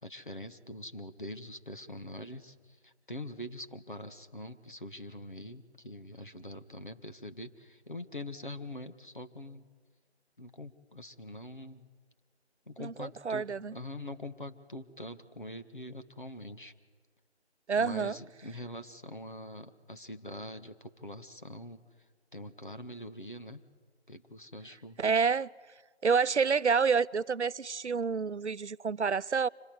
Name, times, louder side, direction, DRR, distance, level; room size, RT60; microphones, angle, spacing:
voice 1, 0.0-9.7 10.4-11.9 12.7-16.7 17.7-21.8 22.3-23.6 24.1-25.0, left 1 dB, 45° left, 1.6 m, -44 dB
voice 2, 12.8-13.7 17.7-18.2 25.0-25.5 26.0-29.5, right 5 dB, 85° right, 0.6 m, -28 dB
25.5 x 17.0 x 9.5 m
figure-of-eight pair, 180°, 33 cm